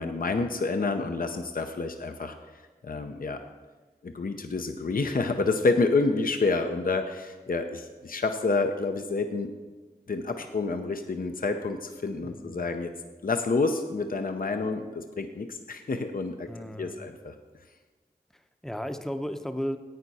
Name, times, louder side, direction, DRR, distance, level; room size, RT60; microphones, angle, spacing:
voice 1, 0.0-2.3 2.8-3.4 4.0-9.5 10.1-12.9 13.2-16.5 16.8-17.3, left 3 dB, 60° left, 6 dB, 0.7 m, -28 dB
voice 2, 12.2-12.7 16.5-17.1 18.3-19.8, equal, 5° left, 8 dB, 0.7 m, -35 dB
11.0 x 8.9 x 4.1 m, 1.3 s
wide cardioid pair, 45°, 16 cm